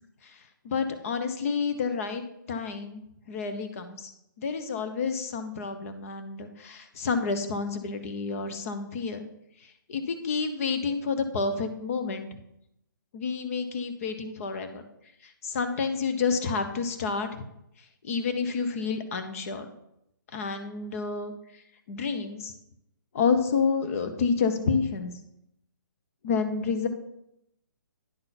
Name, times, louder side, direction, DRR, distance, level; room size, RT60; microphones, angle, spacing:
voice 1, 0.6-2.2 2.5-3.0 3.3-4.1 4.4-9.3 9.9-12.3 13.1-14.8 15.4-17.5 18.0-19.7 20.3-21.3 21.9-22.5 23.1-25.1 26.2-26.9, left 5 dB, 40° left, 8 dB, 0.9 m, -29 dB
10.5 x 3.8 x 4.2 m, 0.79 s
hypercardioid pair, 155°, 11 cm